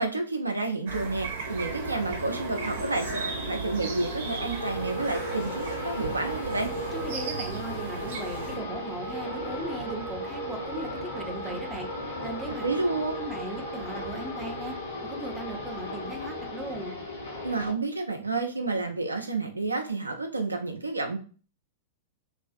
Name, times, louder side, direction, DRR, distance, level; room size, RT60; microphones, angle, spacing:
voice 1, 0.0-6.7 12.6-13.2 17.4-21.2, right 3 dB, 85° right, 4 dB, 0.4 m, -30 dB
sound 1, 0.9-8.6, right 5 dB, 55° right, 0.8 m, -36 dB
sound 2, 1.4-17.7, left 1 dB, 75° left, 0.9 m, -36 dB
voice 2, 6.9-11.9 12.2-12.7 13.2-14.8 15.1-17.0, right 2 dB, 10° right, 2 dB, 0.5 m, -38 dB
2.4 x 2.4 x 2.4 m, 0.37 s
figure-of-eight pair, 100°, 0 cm